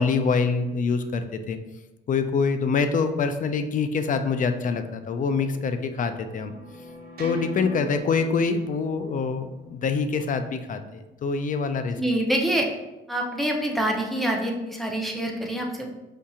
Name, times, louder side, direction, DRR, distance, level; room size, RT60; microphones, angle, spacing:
voice 1, 0.0-1.6 2.1-6.5 7.2-12.0, left 5 dB, 40° left, 9 dB, 0.4 m, -25 dB
sound 1, 4.9-11.1, left 1 dB, 50° right, 0.9 m, -43 dB
voice 2, 12.0-12.7 13.1-15.9, right 1 dB, ahead, 0 dB, 0.6 m, -26 dB
5.0 x 2.7 x 2.4 m, 1.0 s
cardioid pair, 90°, 20 cm